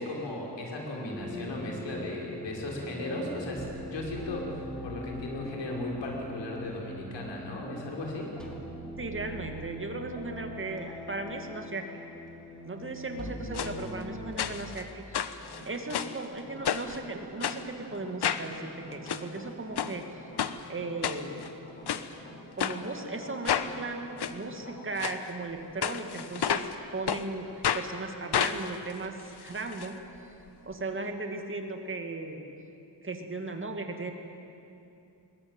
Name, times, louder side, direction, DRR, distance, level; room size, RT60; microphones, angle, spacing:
voice 1, 0.0-8.3, left 1 dB, 85° left, -1 dB, 5.4 m, -36 dB
sound 1, 1.1-14.4, equal, ahead, 2.9 m, -42 dB
voice 2, 9.0-12.0 12.7-20.3 20.7-21.5 22.6-30.1 30.6-32.5 33.0-34.1, right 3 dB, 30° right, 5 dB, 2.2 m, -37 dB
sound 2, 13.5-13.7 14.4-14.8 15.1-16.2 16.6-17.0 17.4-17.6 18.2-18.5 18.9-19.2 19.8-19.9 20.4-20.5 21.0-21.5 21.9-22.0 22.6-22.8 23.4-23.7 24.2-24.3 25.0-25.2 25.8-26.7 27.1-27.2 27.6-27.9 28.3-29.9 30.2-30.3 30.5-30.6, left 9 dB, 65° left, 1.1 m, -30 dB
sound 3, 15.4-25.1, left 1 dB, 30° left, 4.3 m, -49 dB
22.0 x 20.5 x 9.0 m, 2.7 s
wide cardioid pair, 135°, 42 cm